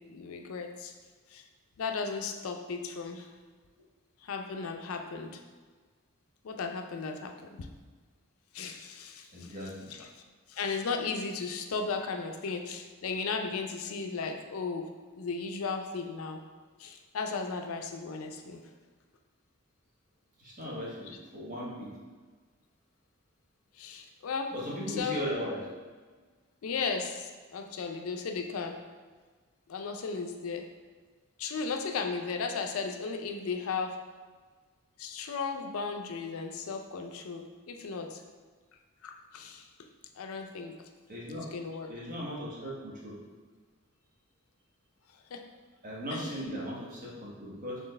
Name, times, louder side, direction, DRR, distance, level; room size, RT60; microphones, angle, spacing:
voice 1, 0.1-0.9 1.3-1.4 1.8-3.3 4.2-5.4 6.4-7.7 8.5-9.6 9.9-10.1 10.5-14.9 15.2-16.4 16.8-18.6 23.7-24.5 24.9-25.2 26.6-28.8 29.7-30.6 31.4-34.0 35.0-38.2 39.0-39.9 40.2-40.8 41.3-41.9 45.3-45.4 46.1-46.3, left 4 dB, 75° left, 4 dB, 0.4 m, -35 dB
voice 2, 9.3-9.9 20.4-21.9 24.5-25.6 41.1-41.4 41.9-43.1 45.8-47.8, equal, 40° right, -5 dB, 1.1 m, -37 dB
4.3 x 3.3 x 3.2 m, 1.4 s
head